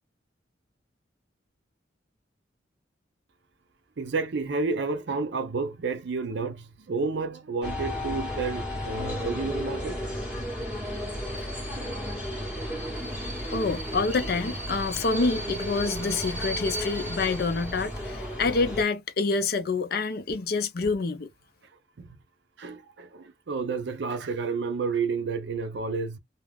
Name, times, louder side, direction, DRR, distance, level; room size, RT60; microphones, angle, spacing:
voice 1, 4.0-10.0 22.0-22.2 22.6-26.2, right 4 dB, 65° right, 0.5 m, -30 dB
sound 1, 7.6-18.8, equal, 5° right, 1.2 m, -33 dB
voice 2, 13.5-21.3, left 4 dB, 55° left, 0.5 m, -27 dB
2.4 x 2.3 x 3.2 m
head